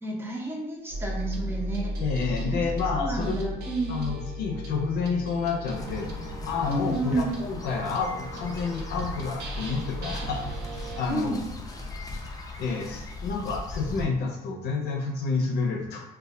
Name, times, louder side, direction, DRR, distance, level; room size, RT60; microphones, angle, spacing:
voice 1, 0.0-1.9 2.4-2.6 3.0-4.0 6.7-7.3 11.1-11.4, right 2 dB, 15° right, -2 dB, 0.7 m, -31 dB
sound 1, 0.9-11.0, equal, 85° right, 0.6 m, -36 dB
voice 2, 2.0-3.6 3.9-6.1 6.5-10.4 10.9-11.4 12.6-16.0, left 4 dB, 75° left, 1 dB, 0.6 m, -29 dB
sound 2, 5.7-14.1, left 2 dB, 20° left, 0.4 m, -38 dB
2.3 x 2.1 x 3.6 m, 0.91 s
cardioid pair, 110°, 17 cm